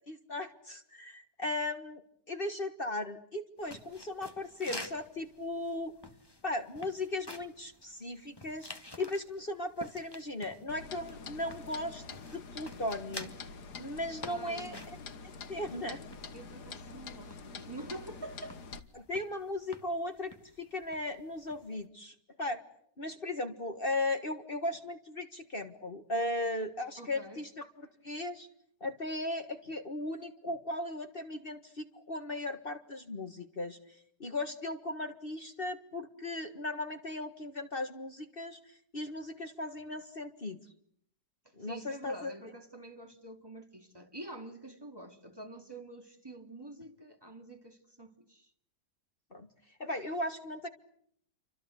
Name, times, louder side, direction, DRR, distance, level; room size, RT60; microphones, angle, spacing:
voice 1, 0.1-2.0 2.3-5.9 6.4-8.7 9.0-12.0 12.3-13.3 13.8-14.8 15.5-16.0 18.9-22.6 23.0-28.5 28.8-33.8 34.2-40.6 41.6-42.3 49.3-49.5 49.8-50.7, left 1 dB, 35° left, 1.8 m, -37 dB
sound 1, 3.6-21.9, left 1 dB, 15° left, 2.0 m, -51 dB
Clock, 10.7-18.8, left 4 dB, 75° left, 2.0 m, -46 dB
voice 2, 14.3-14.8 16.3-18.6 27.0-27.4 41.4-48.5, right 1 dB, 15° right, 2.8 m, -47 dB
29.0 x 25.0 x 8.1 m
omnidirectional pair, 1.8 m